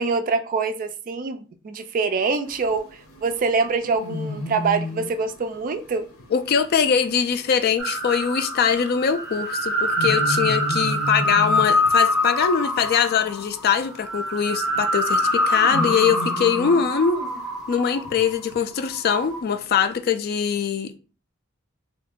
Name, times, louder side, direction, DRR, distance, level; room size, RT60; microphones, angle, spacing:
voice 1, 0.0-2.9 3.2-6.1, right 4 dB, 40° right, 0.3 m, -24 dB
sound 1, 2.4-20.0, left 1 dB, 75° left, 0.8 m, -36 dB
voice 2, 6.3-17.2 17.7-21.0, left 7 dB, 50° left, 0.3 m, -22 dB
sound 2, 7.8-18.4 18.9-19.4, left 1 dB, 5° right, 0.7 m, -25 dB
2.7 x 2.4 x 3.5 m
head